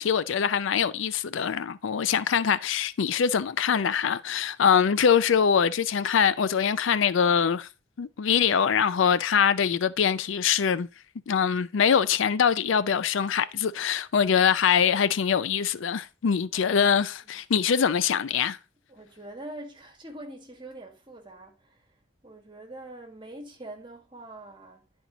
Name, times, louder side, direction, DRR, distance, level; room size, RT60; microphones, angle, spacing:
voice 1, 0.0-7.7 8.0-10.9 11.3-18.6, left 7 dB, 65° left, 0.4 m, -23 dB
voice 2, 16.5-17.0 17.2-17.4 18.9-21.9 22.2-24.8, right 1 dB, 25° right, 1.7 m, -44 dB
10.5 x 4.4 x 3.9 m
head